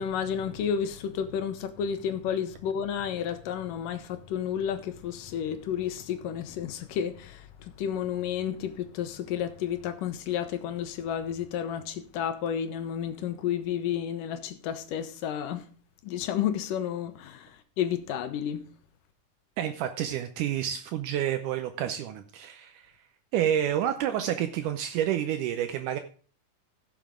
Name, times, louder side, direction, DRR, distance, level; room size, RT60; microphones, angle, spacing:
voice 1, 0.0-15.7 16.0-18.7, left 9 dB, 80° left, 2.6 m, -31 dB
voice 2, 19.6-22.9 23.3-26.0, right 10 dB, 80° right, 2.2 m, -29 dB
15.5 x 7.4 x 3.6 m
omnidirectional pair, 3.8 m